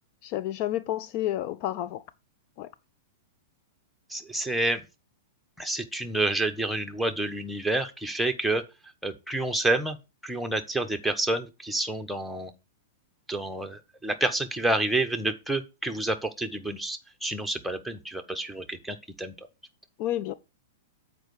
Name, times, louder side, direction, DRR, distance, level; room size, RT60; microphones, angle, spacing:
voice 1, 0.2-2.0 2.6-2.7 20.0-20.3, left 13 dB, 45° left, 0.5 m, -30 dB
voice 2, 4.1-4.8 5.6-8.6 9.0-10.0 10.2-12.5 13.3-19.3, right 2 dB, ahead, 1.2 m, -29 dB
7.9 x 4.7 x 6.6 m
figure-of-eight pair, 100°, 0 cm